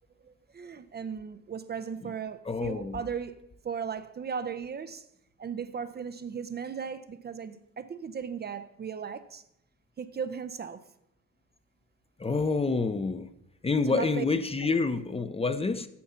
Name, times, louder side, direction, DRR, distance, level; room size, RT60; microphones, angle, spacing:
voice 1, 0.2-3.4 3.6-5.1 5.4-9.4 10.0-10.8 13.8-14.3, right 6 dB, 35° right, 0.5 m, -37 dB
voice 2, 2.5-3.0 12.2-13.3 13.6-15.9, left 4 dB, 20° left, 0.6 m, -28 dB
8.6 x 6.9 x 5.6 m
cardioid pair, 90°, 30 cm